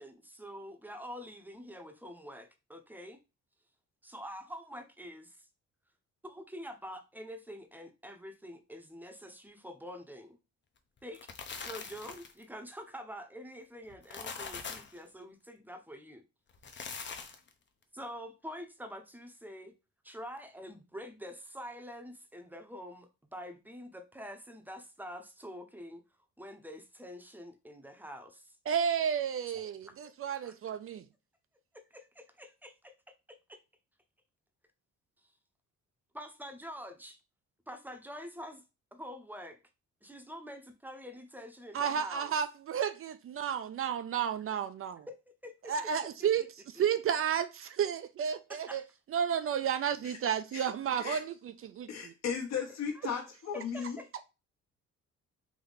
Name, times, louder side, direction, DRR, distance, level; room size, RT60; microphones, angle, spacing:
voice 1, 0.0-3.2 4.0-5.5 6.2-10.4 11.0-11.2 11.6-16.2 17.9-19.7 20.0-26.0 26.4-28.6 29.5-30.5 31.7-33.6 36.1-37.2 37.7-38.6 38.9-39.6 40.0-42.3 45.1-45.7 46.4-46.5 48.5-48.9 52.9-53.2 53.5-54.2, equal, 5° right, 0.7 m, -46 dB
sound 1, 11.0-12.4 13.9-15.0 16.5-17.5, left 5 dB, 40° left, 0.7 m, -42 dB
voice 2, 28.7-31.0 41.7-45.1 45.7-46.4 46.7-48.8 49.1-52.1, right 8 dB, 45° right, 0.4 m, -32 dB
voice 3, 51.9-54.0, left 7 dB, 60° left, 1.2 m, -36 dB
3.5 x 2.7 x 3.9 m
cardioid pair, 90°, 30 cm